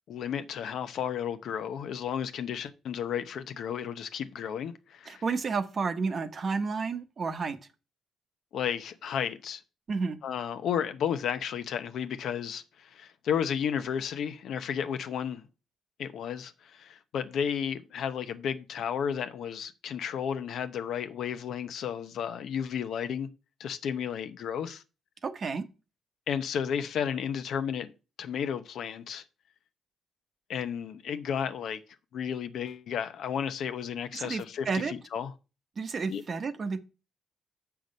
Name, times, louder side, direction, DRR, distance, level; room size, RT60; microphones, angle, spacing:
voice 1, 0.1-5.2 8.5-9.6 10.2-15.4 16.0-23.3 23.6-24.8 26.3-27.9 28.2-29.2 30.5-31.8 32.1-35.3 36.1-36.2, left 8 dB, 70° left, 0.8 m, -33 dB
voice 2, 5.1-7.6 9.9-10.2 25.2-25.6 34.1-34.9 35.8-36.8, right 4 dB, 45° right, 0.9 m, -31 dB
6.7 x 5.9 x 5.2 m
cardioid pair, 90°, 0 cm